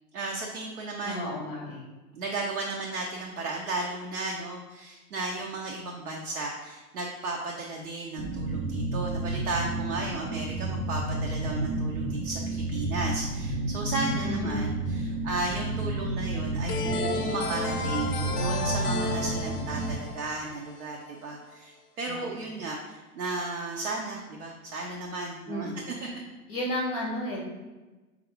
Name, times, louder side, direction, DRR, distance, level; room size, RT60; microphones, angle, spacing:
voice 1, 0.1-1.3 2.1-26.0, right 3 dB, 75° right, -1 dB, 0.7 m, -34 dB
voice 2, 1.0-1.8 14.2-14.6 22.1-22.3 25.5-25.8 26.5-27.4, left 1 dB, 25° left, -2 dB, 0.6 m, -32 dB
sound 1, 8.2-20.0, right 2 dB, 40° right, 0.5 m, -31 dB
sound 2, 16.7-21.3, left 4 dB, 85° left, 0.6 m, -34 dB
4.8 x 2.4 x 3.5 m, 1.2 s
figure-of-eight pair, 110°, 45 cm